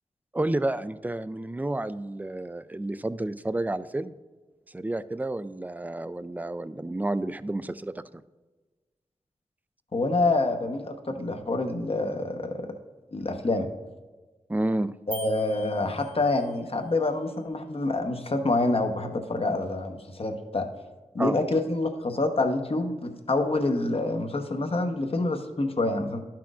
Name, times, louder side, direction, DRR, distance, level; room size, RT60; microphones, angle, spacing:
voice 1, 0.3-4.1 4.7-8.0 14.5-14.9 21.2-21.4, right 1 dB, 15° right, 14 dB, 0.3 m, -30 dB
voice 2, 9.9-12.5 13.1-13.7 15.1-20.7 21.1-26.2, left 2 dB, 50° left, 5 dB, 0.9 m, -27 dB
sound 1, 15.1-16.6, right 2 dB, 65° right, 1.0 m, -43 dB
12.0 x 5.9 x 2.5 m, 1.2 s
wide cardioid pair, 60°, 12 cm